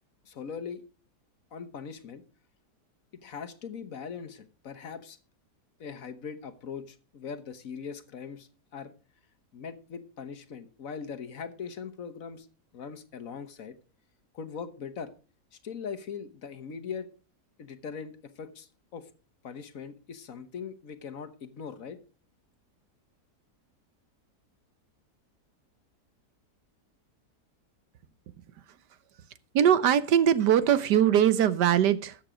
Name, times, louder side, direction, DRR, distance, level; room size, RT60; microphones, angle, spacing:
voice 1, 0.3-0.8 1.5-2.2 3.2-5.2 5.8-8.9 9.5-12.5 12.7-13.7 14.3-15.1 15.5-17.1 17.6-19.1 19.4-22.0, left 6 dB, 55° left, 9 dB, 1.5 m, -40 dB
voice 2, 29.5-32.2, right 9 dB, 85° right, 15 dB, 1.5 m, -21 dB
13.5 x 8.2 x 5.0 m, 0.35 s
omnidirectional pair, 1.8 m